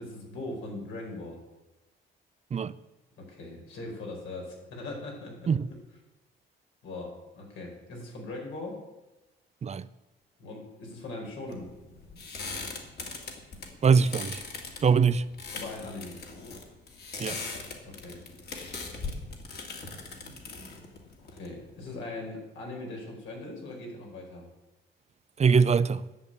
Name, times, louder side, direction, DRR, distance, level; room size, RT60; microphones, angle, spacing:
voice 1, 0.0-1.4 3.2-5.8 6.8-8.8 10.4-11.7 15.5-16.2 17.8-18.2 21.2-24.4, left 2 dB, 80° left, 4.7 m, -40 dB
sound 1, 11.5-21.9, left 3 dB, 55° left, 2.6 m, -40 dB
voice 2, 13.8-14.4 14.8-15.2 17.2-17.4 25.4-26.0, right 6 dB, 35° right, 0.5 m, -22 dB
10.5 x 7.0 x 8.8 m
cardioid pair, 90°, 20 cm